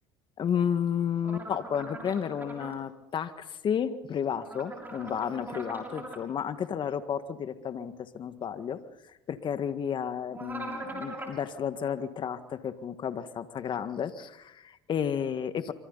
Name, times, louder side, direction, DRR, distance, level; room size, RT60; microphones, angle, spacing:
voice 1, 0.4-8.8 9.1-15.7, left 8 dB, 45° left, 10 dB, 1.8 m, -32 dB
sound 1, 1.2-2.7 4.4-6.2 10.3-11.4, right 2 dB, 15° right, 6.6 m, -41 dB
26.0 x 25.5 x 4.1 m, 0.92 s
supercardioid pair, 85°, 11 cm